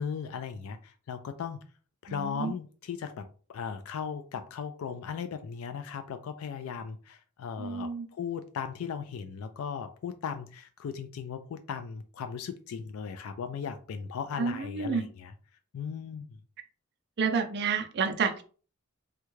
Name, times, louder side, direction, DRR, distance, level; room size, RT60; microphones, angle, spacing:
voice 1, 0.0-1.6 2.0-15.3 15.7-16.3, left 6 dB, 70° left, 9 dB, 0.3 m, -37 dB
voice 2, 2.1-2.5 7.6-8.1 14.4-15.1 17.2-18.4, right 5 dB, 50° right, 6 dB, 0.4 m, -29 dB
3.5 x 2.2 x 3.1 m, 0.39 s
head